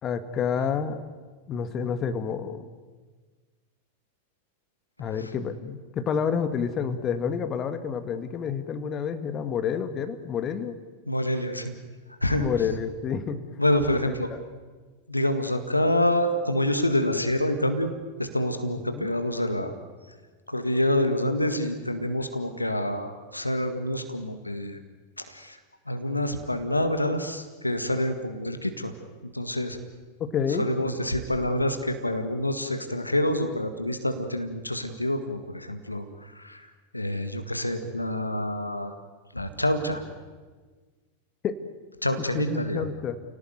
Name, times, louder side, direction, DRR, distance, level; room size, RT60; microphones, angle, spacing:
voice 1, 0.0-1.0 1.5-2.7 5.0-10.8 12.4-13.4 14.0-14.4 18.9-19.1 30.2-30.7 41.4-41.6 42.2-43.2, left 7 dB, 30° left, 10 dB, 1.8 m, -29 dB
voice 2, 11.1-11.7 12.2-12.5 13.6-14.3 15.1-17.9 18.2-19.7 20.5-24.8 25.3-25.6 25.9-28.9 29.3-29.8 30.6-36.7 36.9-38.9 39.3-40.0 42.0-42.9, left 1 dB, 85° left, 8 dB, 1.9 m, -27 dB
29.0 x 18.0 x 9.4 m, 1.4 s
figure-of-eight pair, 90°, 0 cm